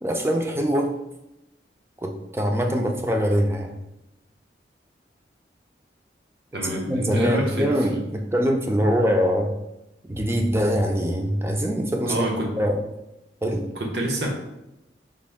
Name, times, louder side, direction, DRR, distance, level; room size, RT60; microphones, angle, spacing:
voice 1, 0.0-0.9 2.0-3.8 6.6-9.5 10.0-12.3 12.6-12.8 13.4-13.7, equal, 15° right, 3 dB, 0.4 m, -23 dB
voice 2, 6.5-7.7 12.1-12.5 13.7-14.3, right 1 dB, 75° right, -1 dB, 0.9 m, -27 dB
5.1 x 2.6 x 3.5 m, 0.91 s
head